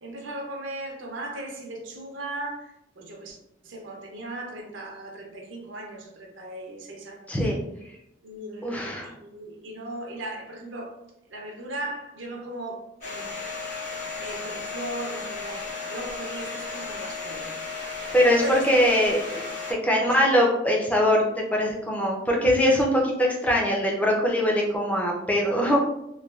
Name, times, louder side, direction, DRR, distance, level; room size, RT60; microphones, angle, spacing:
voice 1, 0.0-3.4 3.6-7.3 8.2-11.0 11.3-13.3 14.2-17.6 18.3-18.7 19.8-20.1, right 1 dB, 85° right, 1 dB, 0.6 m, -37 dB
voice 2, 7.3-7.6 8.6-9.1 18.1-19.4 19.8-25.8, equal, 10° left, -1 dB, 0.4 m, -22 dB
Domestic sounds home sounds, 13.0-19.7, left 4 dB, 40° left, 1.1 m, -34 dB
3.1 x 2.2 x 2.3 m, 0.83 s
head